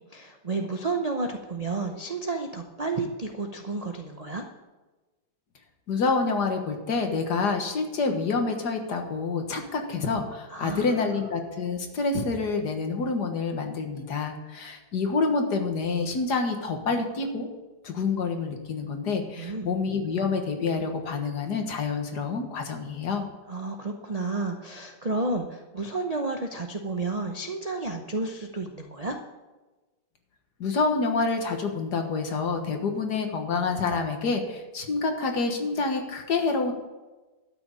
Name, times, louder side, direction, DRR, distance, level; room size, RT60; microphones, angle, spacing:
voice 1, 0.1-4.5 10.5-11.0 19.4-19.7 23.5-29.2, right 3 dB, 55° right, 3 dB, 0.4 m, -31 dB
voice 2, 5.9-17.5 17.8-23.2 30.6-36.7, left 4 dB, 60° left, 4 dB, 1.9 m, -27 dB
12.5 x 6.2 x 8.7 m, 1.2 s
omnidirectional pair, 2.0 m